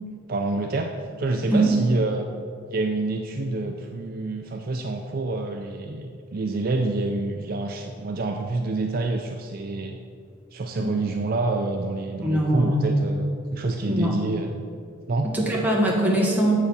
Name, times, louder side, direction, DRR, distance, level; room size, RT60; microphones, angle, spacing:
voice 1, 0.3-2.3 2.7-10.0 10.5-13.3 13.5-14.6 15.1-15.3, right 2 dB, 45° right, 4 dB, 0.4 m, -27 dB
voice 2, 12.2-12.8 13.9-14.1 15.3-16.5, right 1 dB, 10° right, -3 dB, 1.3 m, -22 dB
7.6 x 4.9 x 6.8 m, 2.2 s
head